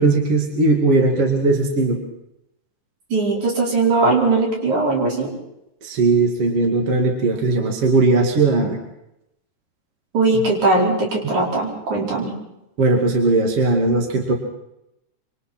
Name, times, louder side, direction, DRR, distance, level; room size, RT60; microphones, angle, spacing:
voice 1, 0.0-2.0 5.8-8.8 11.2-11.3 12.8-14.3, right 3 dB, 50° right, 2 dB, 3.2 m, -18 dB
voice 2, 3.1-5.4 10.1-12.3, right 3 dB, 75° right, -1 dB, 6.2 m, -19 dB
26.5 x 26.0 x 4.4 m, 0.84 s
omnidirectional pair, 3.4 m